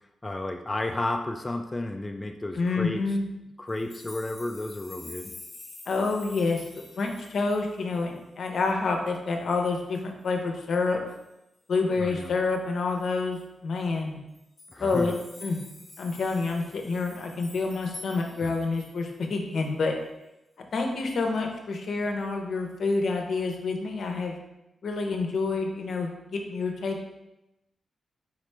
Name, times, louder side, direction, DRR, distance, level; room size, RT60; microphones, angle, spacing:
voice 1, 0.2-3.2 3.6-5.3 12.0-12.3 14.7-15.2 18.4-18.5, left 2 dB, 20° left, 4 dB, 0.3 m, -32 dB
voice 2, 2.5-3.3 5.9-11.0 11.7-14.2 14.8-15.2 15.4-15.6 16.0-19.9 20.7-24.4 24.8-27.1, left 3 dB, 70° left, 3 dB, 0.7 m, -28 dB
sound 1, 3.7-8.2 8.6-8.7 9.1-9.2 9.5-10.0 11.1-11.3 13.0-13.1 13.3-13.4 14.3-19.2 19.6-19.7, left 3 dB, 45° left, 1.0 m, -47 dB
4.9 x 3.1 x 3.3 m, 0.94 s
cardioid pair, 70°, 0 cm